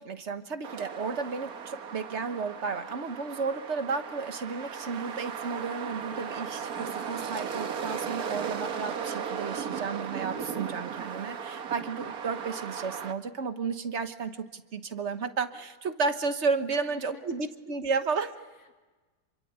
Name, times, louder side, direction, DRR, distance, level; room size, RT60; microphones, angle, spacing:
voice 1, 0.0-18.3, right 4 dB, 45° right, 9 dB, 1.4 m, -33 dB
sound 1, 0.6-13.1, right 7 dB, 65° right, 1.6 m, -36 dB
voice 2, 8.0-8.4 16.7-17.4 18.4-18.8, left 4 dB, 65° left, 3 dB, 3.1 m, -53 dB
27.0 x 23.5 x 8.2 m, 1.3 s
omnidirectional pair, 1.7 m